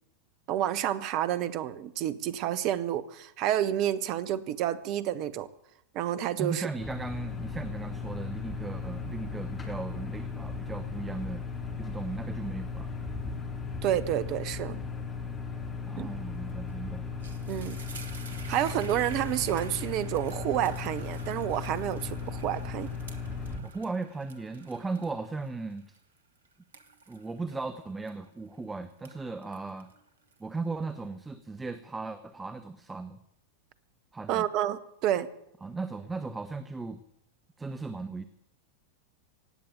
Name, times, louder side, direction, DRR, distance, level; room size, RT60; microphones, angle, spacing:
voice 1, 0.5-5.5 5.9-6.7 13.8-14.8 16.0-16.1 17.5-17.8 18.5-22.9 34.3-35.3, right 11 dB, 40° right, 15 dB, 0.9 m, -29 dB
voice 2, 6.4-11.4 11.8-12.9 15.9-17.1 23.6-25.9 27.1-29.9 30.4-33.2 34.1-34.5 35.6-37.0 37.6-38.2, right 3 dB, 10° right, 10 dB, 0.8 m, -37 dB
sound 1, 6.8-23.6, left 4 dB, 15° left, 2.6 m, -37 dB
sound 2, 16.5-16.7 17.0-28.6 28.9-30.8, right 4 dB, 70° right, 1.4 m, -50 dB
16.5 x 8.6 x 9.1 m, 0.79 s
figure-of-eight pair, 90°, 0 cm